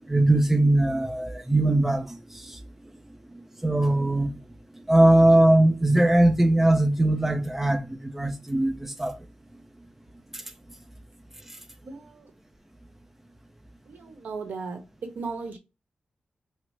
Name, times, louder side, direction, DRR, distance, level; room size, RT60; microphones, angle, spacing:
voice 1, 0.1-2.6 3.6-4.4 4.9-9.2, right 1 dB, 10° right, 0.5 m, -21 dB
voice 2, 11.8-12.3 13.9-14.8 15.1-15.6, right 4 dB, 75° right, 1.0 m, -36 dB
5.9 x 2.0 x 3.2 m
wide cardioid pair, 180°, 3 cm